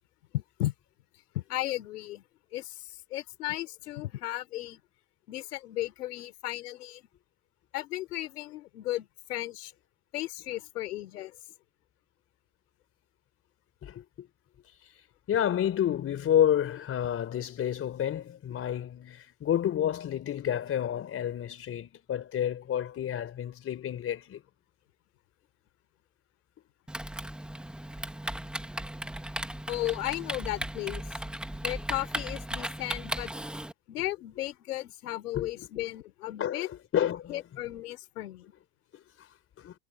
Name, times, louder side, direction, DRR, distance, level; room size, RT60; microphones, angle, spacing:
voice 1, 0.3-0.7 1.3-2.2 2.5-4.8 5.3-7.1 7.7-9.7 10.1-11.4 29.7-31.0 31.6-33.3 33.9-36.7 37.3-38.5, left 15 dB, 90° left, 4.0 m, -35 dB
voice 2, 13.8-14.3 15.3-24.4 35.3-35.5 36.4-37.4 39.6-39.7, left 10 dB, 30° left, 4.4 m, -29 dB
Typing, 26.9-33.7, right 1 dB, ahead, 1.4 m, -36 dB
supercardioid pair, 135°, 44 cm